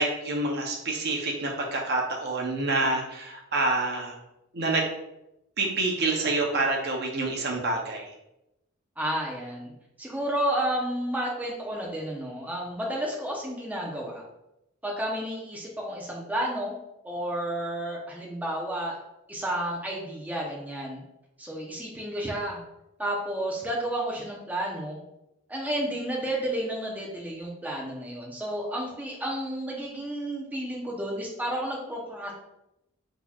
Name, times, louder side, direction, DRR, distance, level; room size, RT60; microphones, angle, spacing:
voice 1, 0.0-4.2 4.5-4.9 5.6-8.1, right 2 dB, 55° right, 0 dB, 0.7 m, -27 dB
voice 2, 9.0-9.7 10.0-14.2 14.8-16.8 17.0-19.0 19.3-21.0 21.4-22.6 23.0-25.0 25.5-32.3, right 1 dB, 10° right, -3 dB, 0.7 m, -31 dB
6.0 x 2.9 x 2.3 m, 0.87 s
head